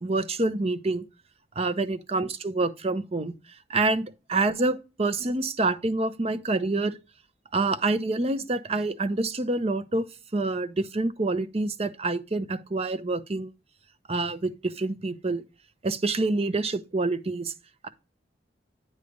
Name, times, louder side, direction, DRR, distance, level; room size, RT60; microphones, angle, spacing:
voice 1, 0.0-1.0 1.6-3.3 3.7-7.0 7.5-10.0 10.3-13.5 14.1-15.4 15.8-17.5 17.8-17.9, right 2 dB, 35° right, 0.7 m, -27 dB
9.5 x 3.2 x 5.2 m
head